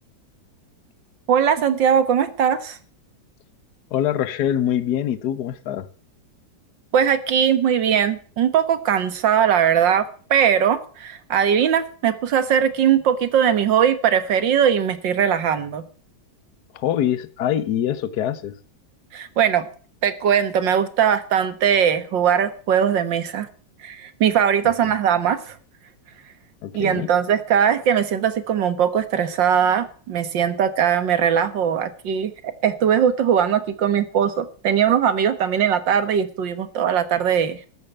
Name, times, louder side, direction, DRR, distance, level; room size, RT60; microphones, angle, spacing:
voice 1, 1.3-2.8 6.9-15.8 19.1-19.6 20.0-23.5 23.8-25.6 26.7-37.6, right 8 dB, 75° right, 2.1 m, -20 dB
voice 2, 3.9-5.9 16.7-18.5 24.6-24.9 26.6-27.1, left 10 dB, 65° left, 1.4 m, -24 dB
13.5 x 8.7 x 8.0 m
omnidirectional pair, 2.0 m